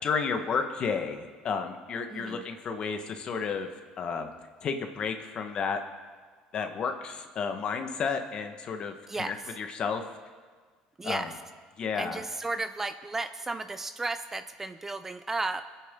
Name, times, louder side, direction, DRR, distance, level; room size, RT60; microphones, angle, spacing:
voice 1, 0.0-3.7 4.0-4.3 4.6-5.8 6.5-10.0 11.0-11.3 11.8-12.2, left 5 dB, 40° left, 6 dB, 1.3 m, -32 dB
voice 2, 2.1-2.5 9.1-9.5 11.0-11.3 11.9-15.7, right 3 dB, 15° right, 9 dB, 0.4 m, -34 dB
24.5 x 8.5 x 3.7 m, 1.5 s
cardioid pair, 125°, 2 cm